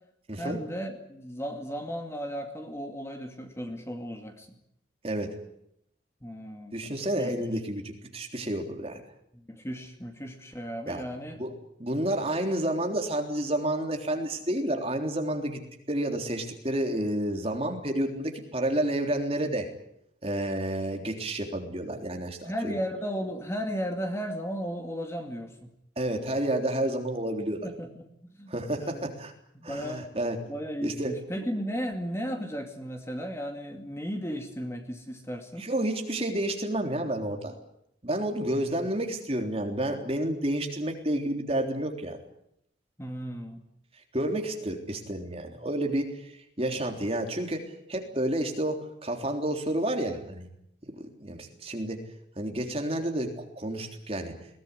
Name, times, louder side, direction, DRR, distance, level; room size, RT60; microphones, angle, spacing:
voice 1, 0.4-4.6 6.2-6.8 7.2-7.5 9.5-11.4 22.5-25.7 27.6-29.1 29.5-30.1 30.5-35.7 38.8-38.9 43.0-43.7, equal, 15° left, 4 dB, 2.4 m, -35 dB
voice 2, 6.7-9.0 10.9-11.1 11.3-11.5 11.8-15.6 15.9-19.7 20.2-22.7 26.0-27.6 28.5-29.3 29.6-30.4 30.8-31.1 35.6-37.6 38.0-42.2 44.1-50.5 50.9-52.0 52.4-54.3, right 1 dB, 30° right, 3 dB, 3.5 m, -30 dB
22.0 x 18.5 x 9.9 m, 0.75 s
head